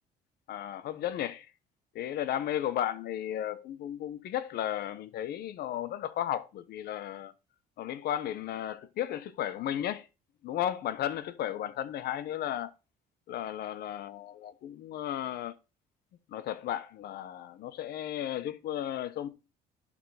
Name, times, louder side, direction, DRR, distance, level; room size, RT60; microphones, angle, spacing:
voice 1, 0.5-1.5 1.9-7.3 7.8-10.1 10.4-12.7 13.3-15.6 16.3-19.3, left 11 dB, 70° left, 1.1 m, -34 dB
11.0 x 3.7 x 6.4 m
cardioid pair, 110°, 17 cm